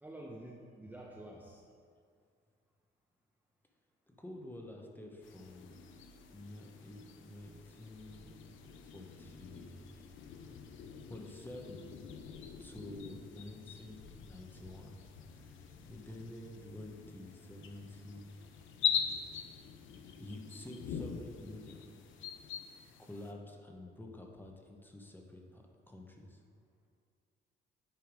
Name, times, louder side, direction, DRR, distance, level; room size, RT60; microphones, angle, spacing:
voice 1, 0.0-1.6, right 1 dB, 10° right, -2 dB, 0.7 m, -49 dB
voice 2, 4.1-5.7 6.3-8.3 8.8-10.0 11.1-11.9 12.6-15.1 15.3-18.4 20.2-22.0 23.0-26.4, left 1 dB, 10° left, 1 dB, 1.0 m, -49 dB
sound 1, 5.2-23.3, left 8 dB, 80° left, 0.6 m, -43 dB
9.1 x 3.5 x 4.9 m, 2.2 s
cardioid pair, 90°, 20 cm